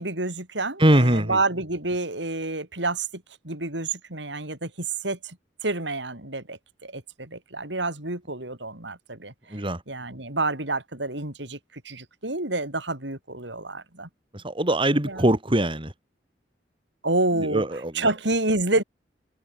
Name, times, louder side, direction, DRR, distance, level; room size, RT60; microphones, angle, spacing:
voice 1, 0.0-3.1 3.4-5.4 5.6-14.1 15.0-15.3 17.0-18.8, right 2 dB, 75° right, 6.8 m, -29 dB
voice 2, 0.8-1.4 9.5-9.8 14.3-15.9 17.4-18.1, right 1 dB, 30° right, 3.9 m, -22 dB
head